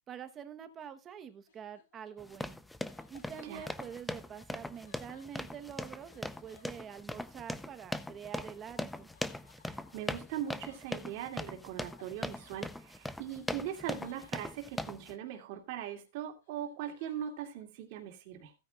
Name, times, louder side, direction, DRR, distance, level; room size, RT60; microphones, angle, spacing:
voice 1, 0.1-2.6 3.1-9.1, right 8 dB, 20° right, 10 dB, 0.9 m, -46 dB
Laughter, 1.5-7.5 8.9-15.9 16.2-17.6, left 7 dB, 85° left, 3.9 m, -64 dB
sound 1, 2.2-15.1, left 1 dB, 5° left, 0.5 m, -40 dB
voice 2, 9.7-18.5, right 10 dB, 50° right, 3 dB, 2.2 m, -40 dB
15.5 x 9.4 x 2.3 m, 0.24 s
supercardioid pair, 160°, 0 cm